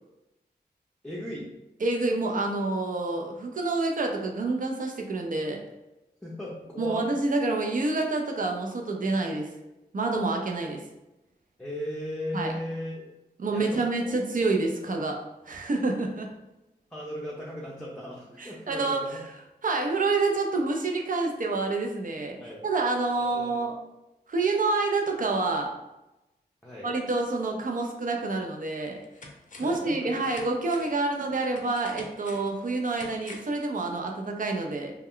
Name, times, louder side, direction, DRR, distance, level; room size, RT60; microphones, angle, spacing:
voice 1, 1.0-1.5 6.2-7.0 11.6-13.0 13.5-14.1 16.9-19.2 22.4-22.6 23.2-23.6 26.6-26.9 29.6-30.1, left 1 dB, 5° left, -5 dB, 0.6 m, -37 dB
voice 2, 1.8-5.6 6.8-9.5 9.9-10.8 12.3-12.5 13.4-16.3 18.4-19.2 19.6-23.7 24.3-25.7 26.8-29.0 29.6-34.9, right 3 dB, 50° right, 2 dB, 0.6 m, -28 dB
sound 1, 28.2-28.3 28.8-29.9 30.2-33.6 33.9-34.0, left 2 dB, 45° left, 0.6 m, -47 dB
2.2 x 2.1 x 3.6 m, 0.95 s
cardioid pair, 40°, 18 cm